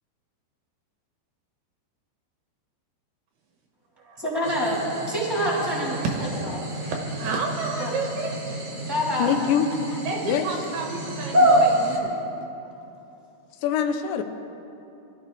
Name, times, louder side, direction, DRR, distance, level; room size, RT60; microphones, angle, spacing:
voice 1, 4.2-4.8 5.1-6.1 7.8-7.9 8.9-9.4, equal, 5° right, -7 dB, 3.0 m, -26 dB
sound 1, 4.4-12.0, right 1 dB, 35° right, 2.2 m, -27 dB
voice 2, 6.5-8.4 10.0-12.2, right 4 dB, 70° right, 0 dB, 3.0 m, -31 dB
voice 3, 9.2-10.4 13.6-14.2, left 8 dB, 85° left, 8 dB, 3.0 m, -24 dB
23.5 x 13.5 x 3.5 m, 2.8 s
omnidirectional pair, 4.9 m